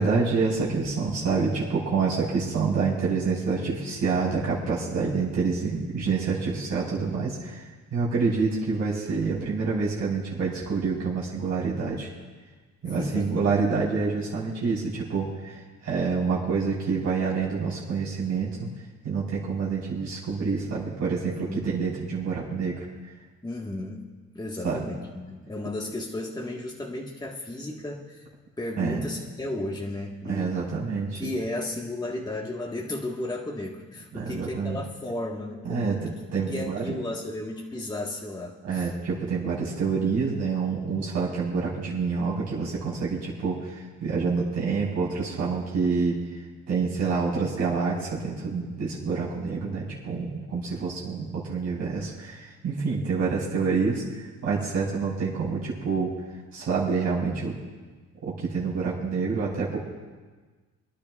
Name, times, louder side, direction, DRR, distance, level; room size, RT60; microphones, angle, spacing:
voice 1, 0.0-7.6 7.9-12.1 12.8-18.7 19.0-22.8 24.6-24.8 28.8-29.0 30.2-31.3 34.1-34.8 35.6-37.0 38.6-43.7 44.0-46.1 46.7-54.0 54.4-56.1 56.5-57.5 58.2-59.8, right 4 dB, 65° right, -6 dB, 4.2 m, -27 dB
voice 2, 12.8-13.5 21.2-21.7 23.4-24.1 24.3-28.3 28.6-30.7 31.1-36.0 36.5-38.9, left 1 dB, 15° left, -2 dB, 1.5 m, -34 dB
30.0 x 10.5 x 2.4 m, 1.4 s
cardioid pair, 90°, 30 cm